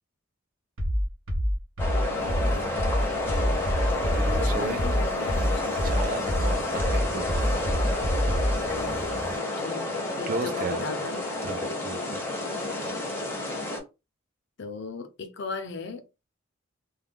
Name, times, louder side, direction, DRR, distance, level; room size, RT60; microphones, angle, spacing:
sound 1, 0.8-8.6, equal, 85° right, 0.8 m, -26 dB
sound 2, 1.8-13.8, left 2 dB, 10° left, 0.6 m, -30 dB
voice 1, 1.9-2.6 4.4-5.7 8.7-9.1 9.6-9.9 10.2-11.2 14.6-16.0, left 4 dB, 55° left, 0.5 m, -37 dB
sound 3, 2.1-9.4, right 1 dB, 60° right, 0.7 m, -41 dB
voice 2, 4.1-4.8 5.8-7.6 10.3-10.8 11.4-12.2, right 3 dB, 45° right, 0.4 m, -34 dB
2.2 x 2.2 x 3.4 m
head